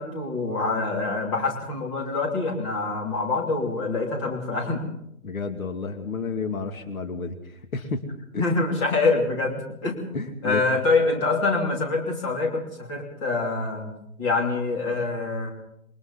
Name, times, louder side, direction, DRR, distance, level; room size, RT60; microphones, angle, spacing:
voice 1, 0.0-4.8 8.4-10.0 10.4-13.9 14.2-15.5, left 3 dB, 20° left, -1 dB, 3.0 m, -25 dB
voice 2, 5.2-8.0 8.3-8.4 10.1-10.6, left 4 dB, 65° left, 6 dB, 2.7 m, -31 dB
28.0 x 23.0 x 4.1 m, 0.77 s
hypercardioid pair, 170°, 45 cm